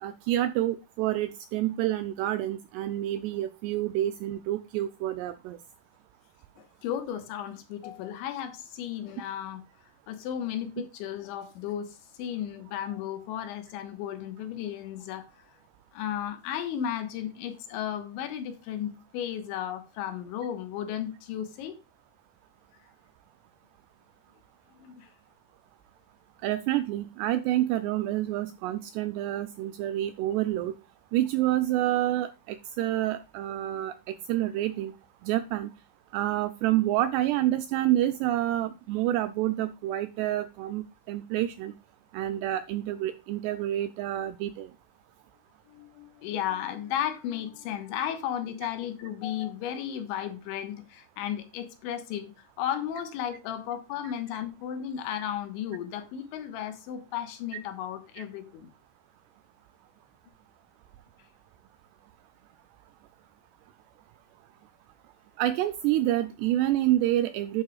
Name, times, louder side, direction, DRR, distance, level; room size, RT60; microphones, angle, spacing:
voice 1, 0.0-5.6 26.4-30.7 31.1-34.9 35.2-35.7 36.1-41.7 42.1-44.7 58.2-58.3 65.4-67.6, right 14 dB, 85° right, 2.4 m, -28 dB
voice 2, 6.6-9.6 10.1-15.5 15.9-21.8 24.8-25.1 45.7-58.7, left 10 dB, 80° left, 3.6 m, -34 dB
12.0 x 7.9 x 2.4 m
omnidirectional pair, 5.3 m